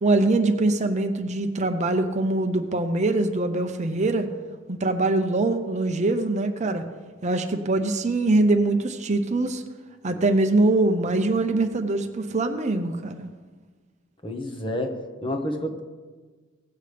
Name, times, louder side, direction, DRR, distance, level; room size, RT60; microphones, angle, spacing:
voice 1, 0.0-4.3 4.7-6.8 7.2-9.6 10.0-13.3, right 2 dB, 35° right, 6 dB, 0.6 m, -23 dB
voice 2, 14.2-15.8, left 1 dB, 25° left, 4 dB, 1.0 m, -29 dB
17.0 x 8.1 x 3.4 m, 1.4 s
head